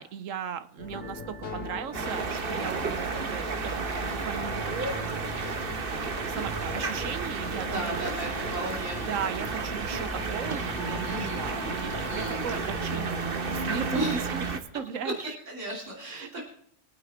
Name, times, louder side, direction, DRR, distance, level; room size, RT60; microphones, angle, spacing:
voice 1, 0.0-5.4 5.9-8.1 9.1-14.5 14.7-15.4 16.0-16.4, right 7 dB, 90° right, 12 dB, 1.2 m, -37 dB
sound 1, 0.8-13.0, left 2 dB, 45° left, 2.9 m, -40 dB
sound 2, 1.9-14.6, right 4 dB, 50° right, 1.3 m, -32 dB
voice 2, 7.6-9.0 11.0-11.4 12.1-12.5 13.9-14.2 15.5-16.4, right 1 dB, 70° right, -2 dB, 3.3 m, -34 dB
23.5 x 9.5 x 3.6 m, 0.68 s
omnidirectional pair, 1.3 m